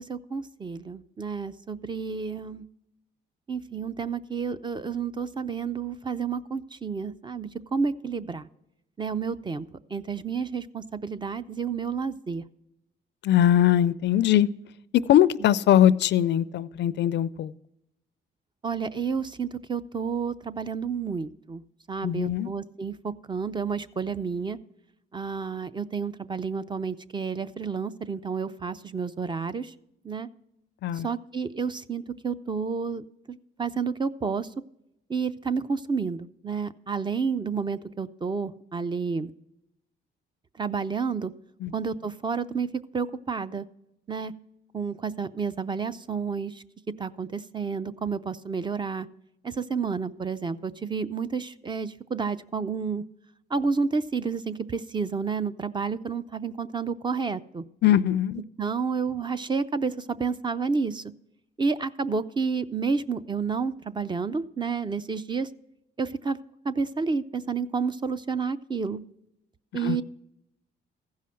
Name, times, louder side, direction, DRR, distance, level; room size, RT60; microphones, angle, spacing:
voice 1, 0.0-2.6 3.5-8.5 9.0-9.7 9.9-12.4 18.6-21.6 21.9-24.6 25.1-29.7 30.0-30.3 30.9-34.5 35.1-39.3 40.6-41.3 41.7-42.7 42.9-43.6 44.1-44.3 44.7-46.6 47.0-49.1 49.4-53.0 53.5-57.6 58.6-61.1 61.6-65.5 66.0-66.4 66.6-69.0 69.7-70.0, right 5 dB, 25° right, 13 dB, 0.4 m, -30 dB
voice 2, 13.2-14.5 15.1-17.5 22.0-22.5 30.8-31.1 41.6-41.7 57.8-58.4 69.8-70.0, left 11 dB, 60° left, 17 dB, 0.4 m, -21 dB
14.5 x 5.6 x 6.2 m, 0.83 s
cardioid pair, 90°, 20 cm